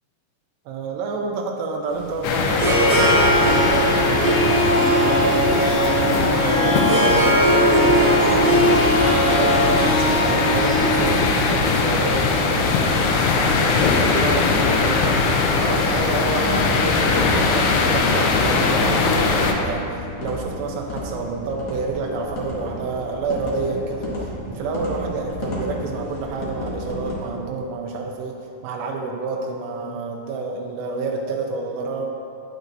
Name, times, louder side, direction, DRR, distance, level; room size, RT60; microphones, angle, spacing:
voice 1, 0.7-4.4 4.9-8.5 9.1-15.2 15.5-28.4 28.6-32.1, right 3 dB, 90° right, 1 dB, 2.8 m, -28 dB
Harp, 1.9-14.1, equal, 65° right, 3.9 m, -20 dB
sound 1, 2.2-19.5, left 4 dB, 85° left, 2.8 m, -21 dB
sound 2, 15.6-27.2, left 1 dB, 55° left, 1.4 m, -33 dB
10.5 x 9.2 x 2.6 m, 2.8 s
omnidirectional pair, 4.8 m